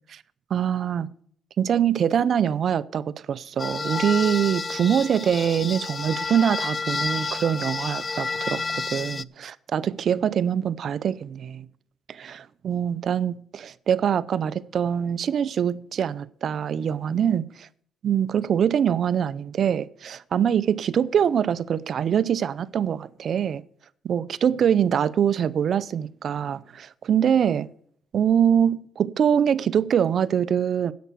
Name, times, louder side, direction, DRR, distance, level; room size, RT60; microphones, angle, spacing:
voice 1, 0.5-1.1 1.6-11.7 12.1-17.7 18.0-23.6 24.0-27.7 28.1-30.9, right 8 dB, 60° right, 0.6 m, -24 dB
sound 1, 3.6-9.2, left 4 dB, 30° left, 0.4 m, -30 dB
10.5 x 8.4 x 6.9 m
cardioid pair, 90°, 0 cm